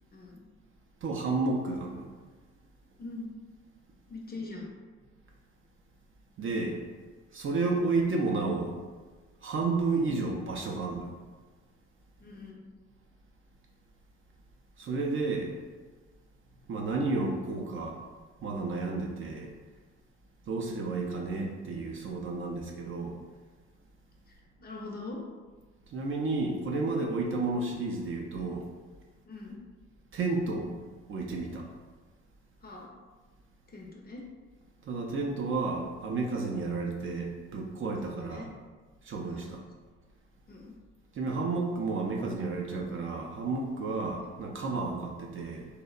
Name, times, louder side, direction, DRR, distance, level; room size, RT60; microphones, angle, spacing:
voice 1, 1.0-2.1 6.4-6.8 7.3-8.8 9.4-11.1 14.8-15.5 16.7-18.0 18.4-19.5 20.5-23.2 25.9-28.7 30.1-30.7 31.1-31.7 34.8-38.5 39.0-39.6 41.1-45.7, right 3 dB, 40° right, 0 dB, 0.4 m, -31 dB
voice 2, 3.0-3.3 4.1-4.7 12.2-12.7 24.6-25.2 29.3-29.6 32.6-32.9 33.7-34.2 38.0-38.5 39.3-39.5 40.5-40.7 43.9-44.0, left 2 dB, 30° left, -1 dB, 0.5 m, -42 dB
2.8 x 2.0 x 2.3 m, 1.3 s
hypercardioid pair, 50°, 33 cm